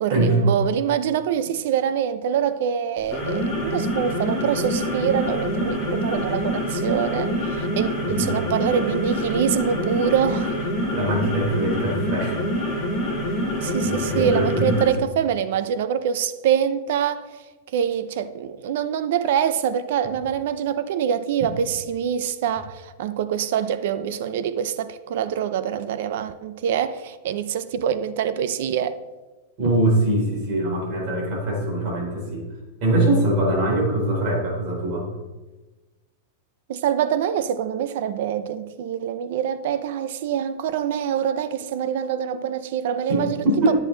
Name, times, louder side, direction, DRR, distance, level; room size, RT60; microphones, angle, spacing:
voice 1, 0.0-10.6 13.6-17.3 17.7-29.0 36.7-43.4, right 8 dB, 60° right, 0.6 m, -25 dB
sound 1, 3.0-15.0, equal, 10° left, 3.3 m, -26 dB
voice 2, 10.9-12.4 13.8-14.9 29.6-32.5 32.8-35.1 43.1-43.8, right 1 dB, 40° right, 4.1 m, -22 dB
12.5 x 8.3 x 4.0 m
supercardioid pair, 165°, 0 cm